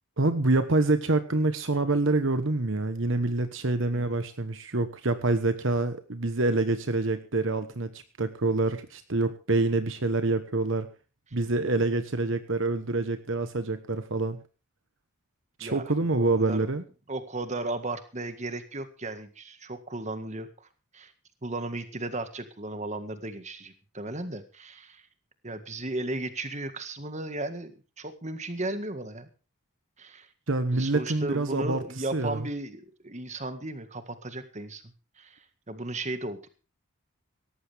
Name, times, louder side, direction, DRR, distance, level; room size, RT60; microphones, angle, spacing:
voice 1, 0.2-10.9 11.3-14.4 15.6-16.8 30.5-32.5, right 2 dB, 60° right, 10 dB, 1.2 m, -26 dB
voice 2, 16.1-16.7 17.1-20.7 20.9-21.1 21.4-25.0 25.4-29.3 30.0-30.3 30.7-34.8 35.2-36.5, right 2 dB, 30° right, 10 dB, 1.8 m, -35 dB
18.0 x 14.0 x 3.5 m, 0.34 s
head